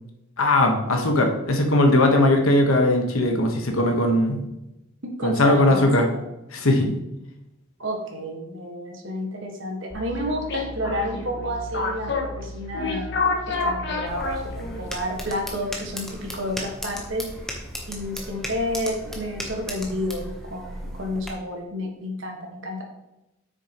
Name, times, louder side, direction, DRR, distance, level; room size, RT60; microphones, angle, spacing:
voice 1, 0.4-4.4 5.2-6.1 6.5-6.9, left 1 dB, 75° left, 3 dB, 1.3 m, -19 dB
voice 2, 5.0-5.9 7.8-17.2 17.9-22.8, equal, 60° right, 1 dB, 1.6 m, -30 dB
sound 1, 9.9-15.0, left 3 dB, 55° left, 1.3 m, -29 dB
sound 2, 14.1-21.3, equal, ahead, 1.0 m, -36 dB
8.3 x 6.5 x 3.0 m, 0.93 s
head